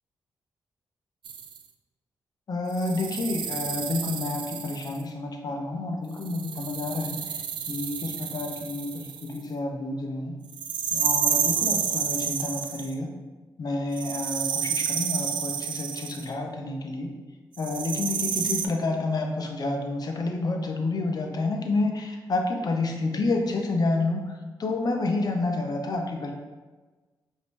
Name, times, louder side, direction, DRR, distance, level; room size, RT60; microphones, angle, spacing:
sound 1, 1.2-1.6 2.7-5.0 6.2-9.4 10.5-12.9 13.9-16.3 17.6-18.7, right 7 dB, 75° right, 0.3 m, -30 dB
voice 1, 2.5-7.4 7.7-10.4 10.9-13.1 13.6-17.1 17.6-26.3, left 2 dB, 55° left, 3 dB, 0.7 m, -29 dB
5.0 x 2.7 x 3.2 m, 1.3 s
cardioid pair, 60°, 8 cm